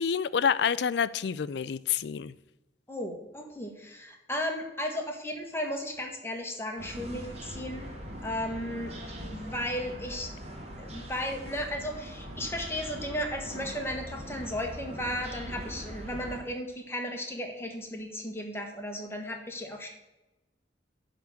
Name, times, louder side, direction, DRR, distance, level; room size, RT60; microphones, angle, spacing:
voice 1, 0.0-2.3, left 7 dB, 70° left, 17 dB, 0.4 m, -28 dB
voice 2, 2.9-7.9 8.2-8.9 9.2-10.3 10.8-19.9, equal, 15° left, 2 dB, 1.5 m, -35 dB
sound 1, 6.8-16.4, equal, 35° right, 1.9 m, -41 dB
10.5 x 3.9 x 7.0 m, 1.0 s
head